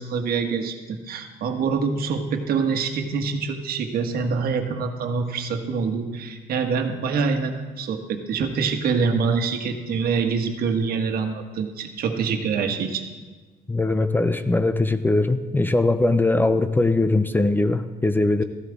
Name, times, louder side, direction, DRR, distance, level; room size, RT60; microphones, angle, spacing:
voice 1, 0.0-13.0, right 5 dB, 60° right, 5 dB, 1.5 m, -25 dB
voice 2, 13.7-18.4, left 2 dB, 10° left, 10 dB, 0.5 m, -21 dB
14.5 x 12.5 x 3.6 m, 1.4 s
cardioid pair, 110°, 17 cm